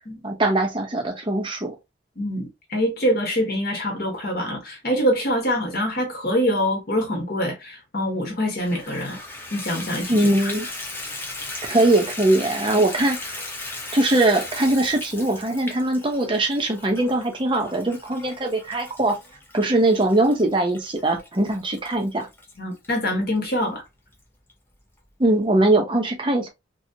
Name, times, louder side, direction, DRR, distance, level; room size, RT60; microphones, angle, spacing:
voice 1, 0.2-1.7 10.1-10.7 11.7-13.4 13.9-19.2 19.5-22.3 25.2-26.5, right 2 dB, 25° right, 0.7 m, -21 dB
voice 2, 2.2-9.2 9.5-10.2 22.6-23.8, equal, 50° left, 1.0 m, -24 dB
Water tap faucet / Bathtub (filling or washing), 8.6-22.9 23.5-23.6 24.1-24.2 24.5-24.6, left 2 dB, 10° left, 0.6 m, -37 dB
2.9 x 2.7 x 2.7 m
head